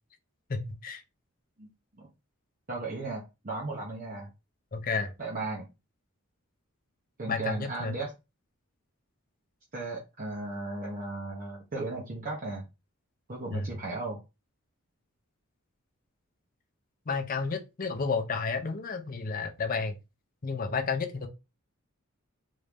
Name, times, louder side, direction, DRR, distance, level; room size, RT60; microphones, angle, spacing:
voice 1, 0.5-1.0 4.7-5.1 7.3-8.0 13.5-13.7 17.1-20.0 20.4-21.3, left 4 dB, 40° left, 0.6 m, -31 dB
voice 2, 2.7-4.3 5.2-5.7 7.2-8.1 9.7-12.6 13.3-14.2, right 2 dB, 40° right, 0.8 m, -36 dB
3.1 x 2.6 x 3.4 m
head